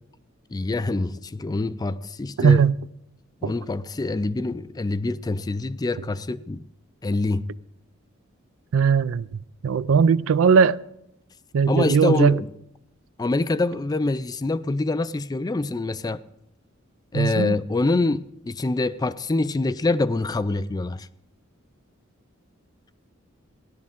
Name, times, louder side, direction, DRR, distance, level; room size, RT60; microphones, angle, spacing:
voice 1, 0.5-2.6 3.4-6.6 7.0-7.5 11.7-12.5 13.2-16.2 17.1-21.1, left 2 dB, 20° left, 0.4 m, -25 dB
voice 2, 2.4-2.7 3.4-3.5 8.7-10.8 11.5-12.4 17.1-17.6, right 6 dB, 75° right, 0.4 m, -19 dB
16.0 x 11.5 x 3.6 m
head